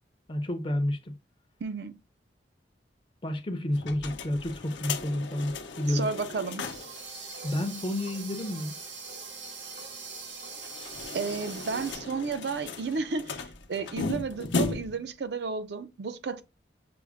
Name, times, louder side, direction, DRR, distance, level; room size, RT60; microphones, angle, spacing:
voice 1, 0.3-1.1 3.2-6.1 7.4-8.8, left 1 dB, 30° left, 0.5 m, -30 dB
voice 2, 1.6-2.0 5.9-6.6 11.1-16.4, right 4 dB, 65° right, 0.5 m, -32 dB
sound 1, 3.8-7.0 7.3-7.4 7.7-7.8 10.5-15.1, left 3 dB, 85° left, 0.6 m, -36 dB
sound 2, 6.6-11.9, right 4 dB, 80° right, 1.4 m, -42 dB
5.9 x 2.1 x 3.5 m
head